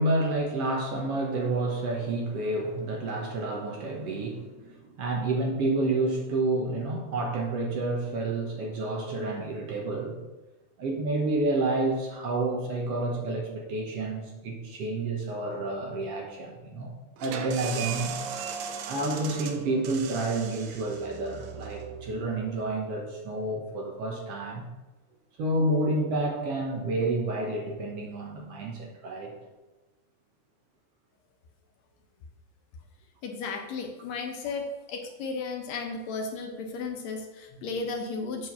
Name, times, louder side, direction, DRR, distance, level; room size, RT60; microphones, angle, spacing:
voice 1, 0.0-10.2 10.8-16.9 17.2-18.1 18.9-24.7 25.4-29.3, right 2 dB, 60° right, 1 dB, 2.0 m, -29 dB
sound 1, 17.2-22.6, right 7 dB, 90° right, 2.2 m, -38 dB
voice 2, 33.2-38.5, left 4 dB, 70° left, 3 dB, 2.2 m, -34 dB
7.7 x 4.7 x 7.2 m, 1.1 s
omnidirectional pair, 3.4 m